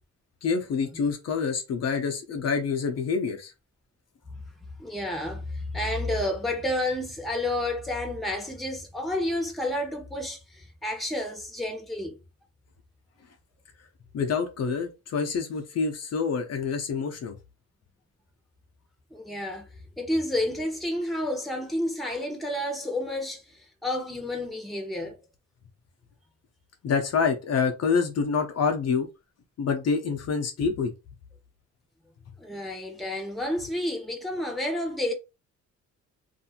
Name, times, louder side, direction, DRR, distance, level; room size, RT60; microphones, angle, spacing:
voice 1, 0.4-3.5 14.1-17.4 26.8-29.1 29.6-30.9, left 5 dB, 55° left, 0.7 m, -27 dB
voice 2, 4.8-12.1 19.1-19.7 20.0-25.1 32.4-35.1, left 1 dB, ahead, 0.9 m, -30 dB
2.6 x 2.5 x 2.8 m
cardioid pair, 90°, 30 cm